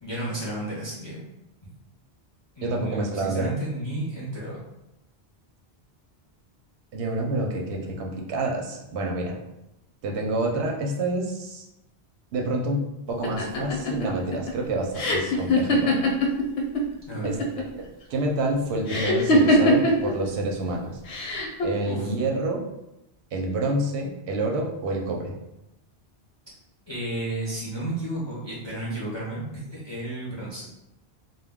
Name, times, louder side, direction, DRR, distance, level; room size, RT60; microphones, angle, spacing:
voice 1, 0.0-1.2 1.6-1.7 2.6-4.6 17.1-17.4 21.8-22.1 26.9-30.7, right 1 dB, 35° left, -6 dB, 0.5 m, -32 dB
voice 2, 2.6-3.5 6.9-9.4 10.0-11.6 12.3-15.9 17.2-21.0 21.6-22.6 23.3-25.4, right 2 dB, 90° right, 1 dB, 0.9 m, -28 dB
sound 1, 13.2-16.8 17.1-17.8 18.9-20.1 21.1-21.7, left 1 dB, 85° left, 0.9 m, -22 dB
2.2 x 2.1 x 3.4 m, 0.89 s
omnidirectional pair, 1.1 m